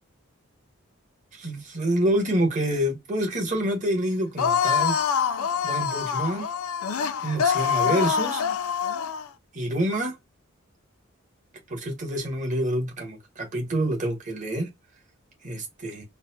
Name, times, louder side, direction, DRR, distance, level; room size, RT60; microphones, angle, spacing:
voice 1, 1.3-5.0 5.6-6.5 7.2-8.4 9.5-10.2 11.7-14.7 15.4-16.0, right 1 dB, 35° right, 1.0 m, -27 dB
sound 1, 4.4-9.3, left 7 dB, 80° left, 0.4 m, -25 dB
3.9 x 2.1 x 2.7 m
head